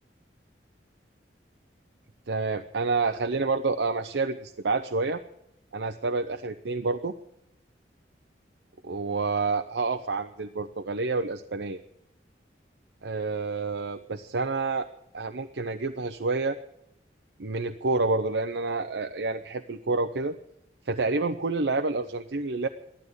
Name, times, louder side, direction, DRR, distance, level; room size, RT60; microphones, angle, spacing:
voice 1, 2.3-5.2 5.7-7.1 8.8-11.8 13.0-14.9 15.1-16.6 17.4-20.3 20.9-22.7, right 3 dB, 85° right, 7 dB, 0.8 m, -28 dB
14.0 x 12.0 x 8.1 m, 0.78 s
head